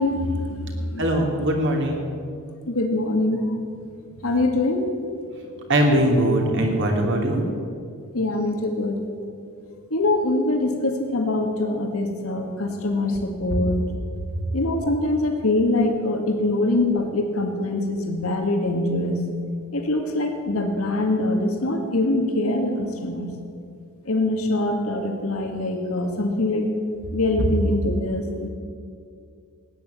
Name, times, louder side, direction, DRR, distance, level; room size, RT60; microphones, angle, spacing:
voice 1, 0.0-1.1 2.7-3.5 4.2-4.9 8.1-9.0 9.9-13.8 14.5-19.2 19.7-23.3 24.1-26.7 27.1-28.5, left 2 dB, 85° left, 2 dB, 2.1 m, -23 dB
voice 2, 1.0-2.0 5.7-7.4 14.3-14.4, right 1 dB, 60° right, 1 dB, 3.0 m, -21 dB
17.0 x 9.7 x 8.3 m, 2.3 s
head